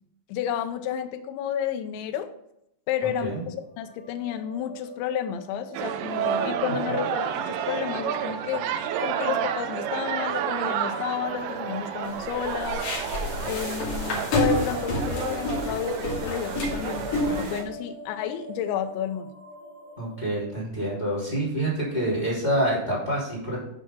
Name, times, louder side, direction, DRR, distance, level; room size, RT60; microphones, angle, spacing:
voice 1, 0.3-2.3 2.9-8.7 9.0-12.8 13.5-19.3, left 9 dB, 85° left, 7 dB, 2.9 m, -31 dB
voice 2, 3.0-3.4 20.0-23.6, right 1 dB, 10° left, -6 dB, 2.7 m, -27 dB
sound 1, 3.7-20.5, right 1 dB, 50° right, 1.5 m, -42 dB
sound 2, 5.7-17.6, right 9 dB, 80° right, 2.8 m, -30 dB
sound 3, 12.0-17.6, left 1 dB, 50° left, 3.6 m, -29 dB
10.0 x 5.2 x 5.5 m, 0.79 s
omnidirectional pair, 5.4 m